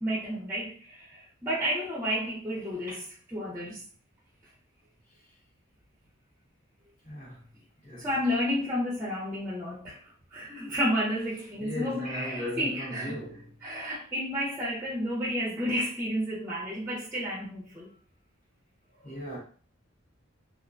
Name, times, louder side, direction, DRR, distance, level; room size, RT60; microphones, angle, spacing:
voice 1, 0.0-3.8 8.0-10.0 10.3-13.2 13.6-17.9, equal, 10° right, 0.5 m, -31 dB
voice 2, 7.0-7.5 7.8-8.1 11.5-13.8 18.9-19.4, left 1 dB, 40° left, 0.9 m, -38 dB
2.3 x 2.1 x 2.5 m
head